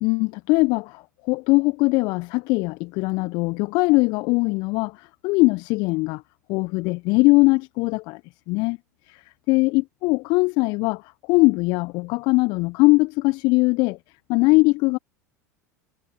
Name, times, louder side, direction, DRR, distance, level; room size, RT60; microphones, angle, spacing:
voice 1, 0.0-4.9 5.2-6.2 6.5-8.2 8.5-8.8 9.5-11.0 11.3-14.0 14.3-15.0, left 25 dB, 50° left, 1.4 m, -20 dB
figure-of-eight pair, 80°, 9 cm